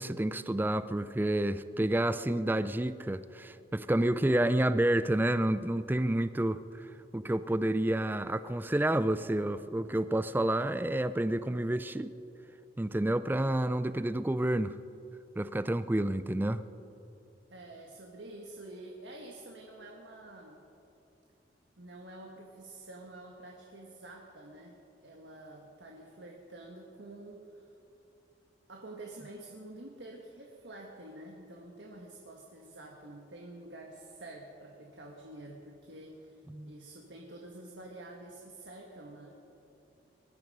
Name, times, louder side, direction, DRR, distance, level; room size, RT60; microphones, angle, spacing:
voice 1, 0.0-12.1 12.8-14.7 15.4-16.6 36.5-36.7, right 1 dB, 10° right, 14 dB, 0.4 m, -29 dB
voice 2, 17.5-20.6 21.8-27.7 28.7-39.4, right 2 dB, 75° right, 0 dB, 1.5 m, -48 dB
20.5 x 12.5 x 5.3 m, 2.8 s
head